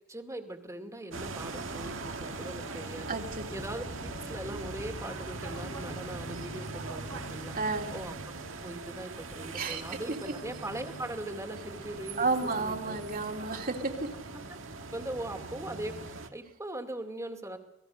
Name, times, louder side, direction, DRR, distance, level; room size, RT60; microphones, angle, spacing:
voice 1, 0.1-3.2 3.5-7.6 7.9-13.0 14.3-14.6 14.9-17.6, right 1 dB, 15° right, 5 dB, 2.4 m, -40 dB
sound 1, 1.1-16.3, right 3 dB, 80° right, 1.9 m, -41 dB
voice 2, 3.1-3.4 7.5-7.9 9.5-9.8 12.2-14.1, right 3 dB, 45° right, 3 dB, 3.0 m, -31 dB
sound 2, 3.5-10.2, left 1 dB, 30° left, 1.6 m, -49 dB
sound 3, 3.8-15.5, right 2 dB, 75° left, 3.3 m, -51 dB
27.5 x 19.5 x 6.5 m, 0.79 s
head